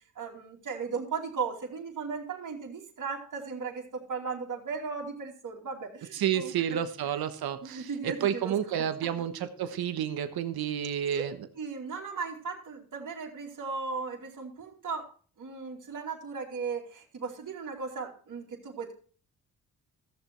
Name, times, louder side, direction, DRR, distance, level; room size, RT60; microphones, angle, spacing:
voice 1, 0.1-6.8 7.6-9.1 11.1-11.3 11.6-15.1 15.4-19.0, right 5 dB, 55° right, 0 dB, 2.8 m, -37 dB
voice 2, 6.1-11.4, right 9 dB, 70° right, 10 dB, 1.3 m, -30 dB
14.5 x 7.1 x 4.5 m, 0.41 s
supercardioid pair, 55°, 38 cm